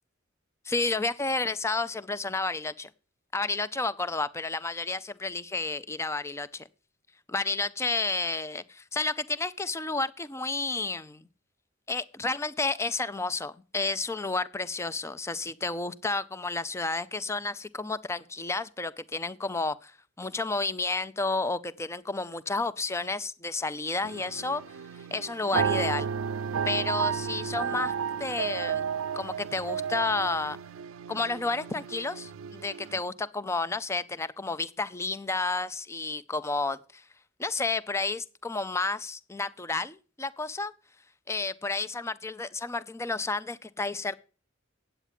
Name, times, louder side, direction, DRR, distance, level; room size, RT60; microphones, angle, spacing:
voice 1, 0.7-2.9 3.3-6.7 7.3-11.3 11.9-26.1 26.7-27.9 28.2-28.8 29.1-30.6 31.1-37.0 37.4-40.7 41.3-44.2, left 3 dB, 15° left, 16 dB, 0.4 m, -31 dB
sound 1, 24.0-33.0, right 7 dB, 80° right, 0.4 m, -32 dB
9.6 x 8.1 x 7.4 m, 0.38 s
head